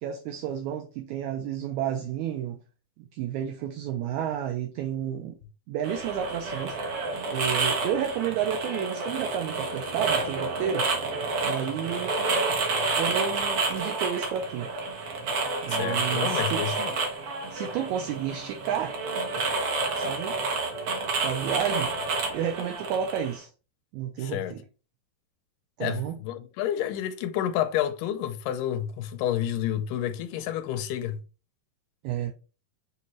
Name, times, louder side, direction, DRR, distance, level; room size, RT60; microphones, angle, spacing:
voice 1, 0.0-2.6 3.0-5.4 5.7-6.8 7.3-10.9 11.4-12.1 13.0-14.7 15.6-16.7 17.5-19.0 19.9-20.4 21.2-21.9 22.3-23.5 23.9-24.6 25.8-26.2 32.0-32.3, right 9 dB, 80° right, 1.7 m, -31 dB
sound 1, 5.8-23.4, right 3 dB, 60° right, 1.5 m, -29 dB
voice 2, 15.7-16.9 24.2-24.6 25.8-31.2, left 11 dB, 80° left, 2.0 m, -29 dB
7.0 x 2.5 x 3.0 m
omnidirectional pair, 3.8 m